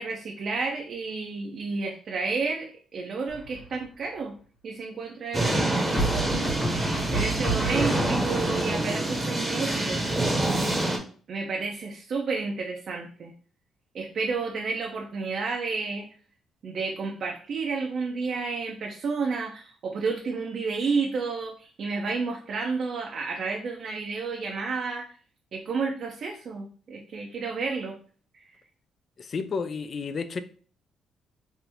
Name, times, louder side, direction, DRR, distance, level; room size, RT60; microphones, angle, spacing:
voice 1, 0.0-4.4 4.6-6.3 7.1-10.0 11.3-13.3 13.9-16.1 16.6-25.1 25.5-28.0 28.3-28.4, right 4 dB, 55° right, 0.5 m, -31 dB
sound 1, 3.3-3.8 5.9-8.6, right 2 dB, 30° left, 1.5 m, -31 dB
sound 2, 5.3-11.0, right 1 dB, 15° right, 0.8 m, -26 dB
voice 2, 29.2-30.4, left 5 dB, 45° left, 0.3 m, -31 dB
3.4 x 2.5 x 2.9 m
cardioid pair, 90°, 0 cm